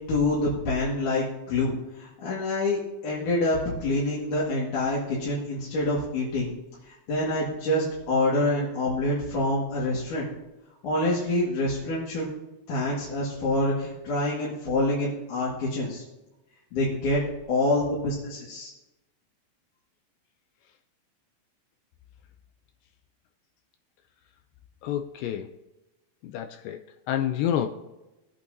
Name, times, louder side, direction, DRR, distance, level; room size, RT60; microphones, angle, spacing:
voice 1, 0.1-2.8 3.0-6.5 6.9-10.3 10.8-12.3 12.7-16.0 16.7-17.2 17.5-18.7, left 2 dB, 65° left, -6 dB, 3.2 m, -26 dB
voice 2, 24.8-25.5 26.2-27.7, left 10 dB, 80° left, 6 dB, 2.2 m, -29 dB
20.5 x 8.4 x 2.7 m, 1.0 s
omnidirectional pair, 4.1 m